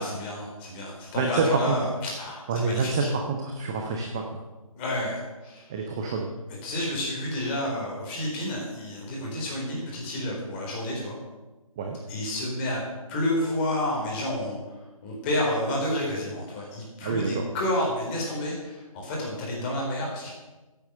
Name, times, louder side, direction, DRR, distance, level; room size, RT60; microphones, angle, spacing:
voice 1, 0.0-3.1 4.7-5.7 6.6-11.2 12.1-12.8 13.1-14.6 15.0-20.3, left 1 dB, 20° left, -2 dB, 4.1 m, -30 dB
voice 2, 1.2-1.7 2.5-4.4 5.7-6.3 11.8-12.0 17.0-17.4, right 4 dB, 10° right, 3 dB, 0.4 m, -27 dB
15.5 x 8.9 x 6.8 m, 1.1 s
figure-of-eight pair, 150°, 18 cm